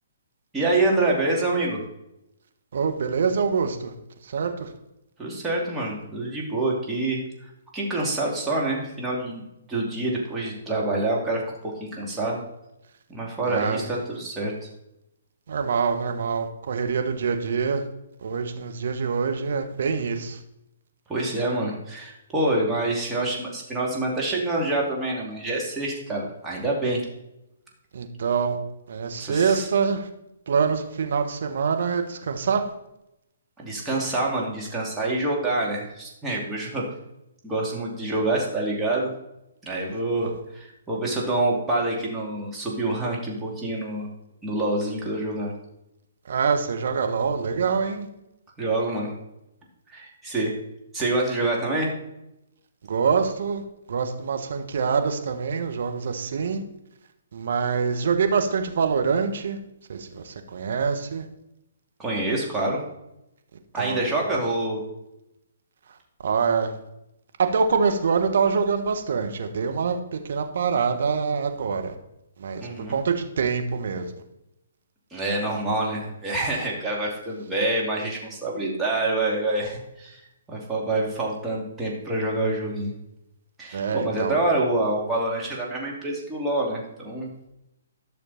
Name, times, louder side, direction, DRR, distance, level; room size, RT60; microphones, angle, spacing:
voice 1, 0.5-1.8 5.2-9.4 9.7-12.4 13.1-14.7 21.1-27.1 29.2-29.7 33.6-36.8 37.4-39.1 39.6-44.1 44.4-45.5 48.6-49.1 49.9-50.5 50.9-51.9 62.0-62.8 63.7-64.8 72.6-73.0 75.1-80.2 80.5-82.9 83.6-87.3, right 2 dB, 10° right, -3 dB, 2.8 m, -26 dB
voice 2, 2.7-3.9 4.2-4.7 13.5-13.9 15.5-17.8 18.2-20.4 27.9-28.6 28.9-30.1 30.5-32.6 40.2-40.3 46.3-48.1 52.9-53.6 53.9-56.6 57.3-59.6 59.9-61.3 63.7-64.0 66.2-66.7 67.4-71.9 72.4-72.6 72.9-74.0 83.7-84.3, right 5 dB, 60° right, 6 dB, 1.5 m, -25 dB
12.0 x 6.5 x 4.3 m, 0.86 s
hypercardioid pair, 135°, 0 cm